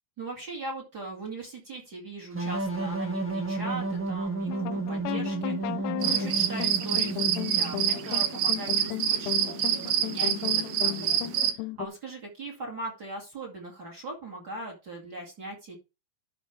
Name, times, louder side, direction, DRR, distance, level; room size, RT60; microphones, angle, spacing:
voice 1, 0.2-15.8, right 2 dB, 35° right, 0 dB, 2.3 m, -40 dB
sound 1, 2.3-8.0, right 3 dB, 10° right, 0.6 m, -32 dB
sound 2, 4.5-11.9, left 17 dB, 80° left, 2.0 m, -35 dB
sound 3, 6.0-11.5, right 10 dB, 85° right, 1.4 m, -27 dB
12.0 x 5.0 x 3.3 m, 0.28 s
omnidirectional pair, 4.0 m